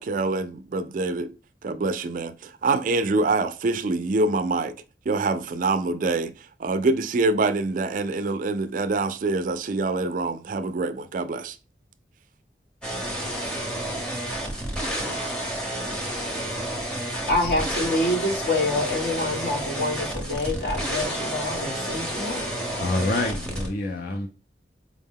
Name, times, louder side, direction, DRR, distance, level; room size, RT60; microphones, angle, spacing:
voice 1, 0.0-1.3 1.6-4.7 5.1-11.6, right 3 dB, 50° right, 0.3 m, -25 dB
sound 1, 12.8-23.7, right 1 dB, 5° left, 0.9 m, -30 dB
voice 2, 17.3-22.4, left 2 dB, 80° left, 1.5 m, -26 dB
voice 3, 22.8-24.3, left 2 dB, 50° left, 0.5 m, -27 dB
4.7 x 2.1 x 3.6 m
head